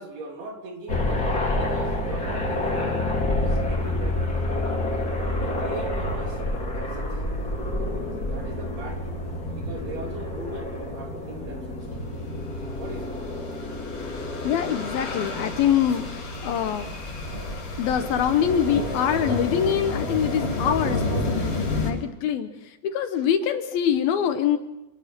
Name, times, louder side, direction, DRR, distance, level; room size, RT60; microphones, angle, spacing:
voice 1, 0.0-4.5 5.0-6.4 6.7-7.1 8.2-9.2 9.5-11.9 12.8-13.1, right 2 dB, 65° right, 2 dB, 5.1 m, -39 dB
sound 1, 0.9-19.5, left 1 dB, 20° left, 4.4 m, -29 dB
sound 2, 13.0-21.9, left 2 dB, 50° left, 6.6 m, -30 dB
voice 2, 14.4-16.9 17.8-24.6, left 9 dB, 70° left, 9 dB, 2.7 m, -24 dB
28.0 x 19.0 x 6.1 m, 0.95 s
omnidirectional pair, 4.8 m